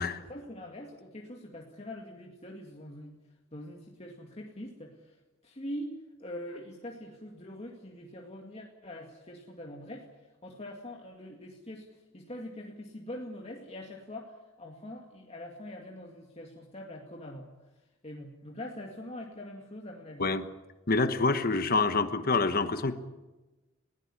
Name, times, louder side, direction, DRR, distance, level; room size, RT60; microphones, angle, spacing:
voice 1, 0.1-3.2 3.5-5.2 5.4-17.5 18.0-20.3, left 1 dB, 30° left, 0 dB, 2.2 m, -43 dB
voice 2, 20.9-22.9, left 3 dB, 45° left, 10 dB, 1.2 m, -26 dB
21.0 x 17.0 x 10.0 m, 1.1 s
head